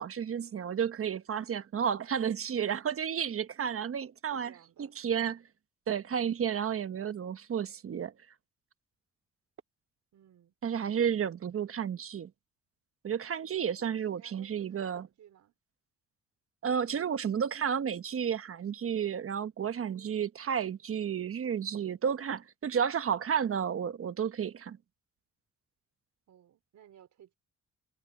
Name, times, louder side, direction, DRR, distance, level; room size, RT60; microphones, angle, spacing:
voice 1, 0.0-4.5 4.8-5.4 5.9-8.1 10.6-12.3 13.0-15.1 16.6-24.8, right 8 dB, 50° right, 1.2 m, -32 dB
voice 2, 4.3-5.0 10.1-10.5 13.8-15.5 26.3-27.4, right 10 dB, 70° right, 4.9 m, -58 dB
cardioid pair, 90°, 30 cm